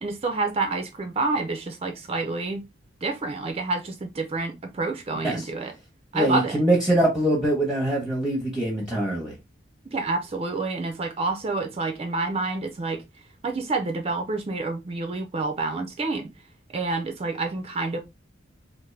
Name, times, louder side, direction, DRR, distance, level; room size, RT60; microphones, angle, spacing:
voice 1, 0.0-2.6 3.0-5.7 6.1-6.6 9.9-13.0 13.4-16.3 16.7-18.0, right 3 dB, 30° right, 0.4 m, -28 dB
voice 2, 6.1-9.3, right 1 dB, 5° right, 0.8 m, -23 dB
3.6 x 2.5 x 3.1 m
head